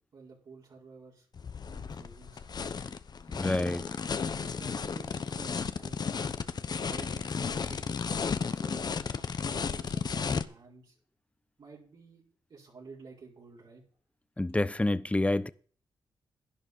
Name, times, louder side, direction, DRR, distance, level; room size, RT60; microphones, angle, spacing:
voice 1, 0.1-1.3 1.7-2.9 3.5-6.3 6.8-10.9 11.6-12.2 12.5-13.8, right 4 dB, 60° right, 5.1 m, -52 dB
sound 1, 1.3-10.4, left 6 dB, 55° left, 1.0 m, -34 dB
voice 2, 3.3-3.8 14.4-15.5, left 2 dB, 15° left, 0.8 m, -28 dB
11.5 x 10.5 x 5.4 m
cardioid pair, 60°, 9 cm